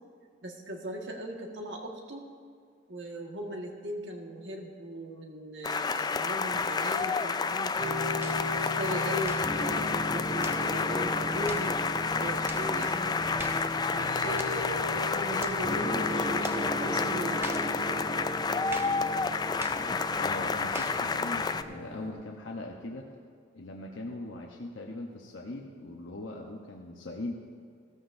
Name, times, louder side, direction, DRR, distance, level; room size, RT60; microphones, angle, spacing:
voice 1, 0.4-2.3 2.9-8.1 8.5-13.2 13.9-17.7, equal, 70° right, 1 dB, 1.6 m, -39 dB
sound 1, 5.6-21.6, left 4 dB, 20° left, 0.3 m, -30 dB
sound 2, 7.8-22.1, equal, 5° left, 2.3 m, -36 dB
sound 3, 8.2-8.5 9.2-9.5 10.4-10.7 11.5-11.7 12.5-12.7 13.4-13.7 14.4-14.6 15.4-15.6 16.4-16.7 17.4-17.7 18.7-19.0 19.6-19.9 20.7-21.0, right 2 dB, 15° right, 0.7 m, -42 dB
voice 2, 20.2-23.1 23.5-27.3, left 2 dB, 90° left, 0 dB, 0.9 m, -40 dB
16.0 x 13.5 x 2.6 m, 2.2 s
head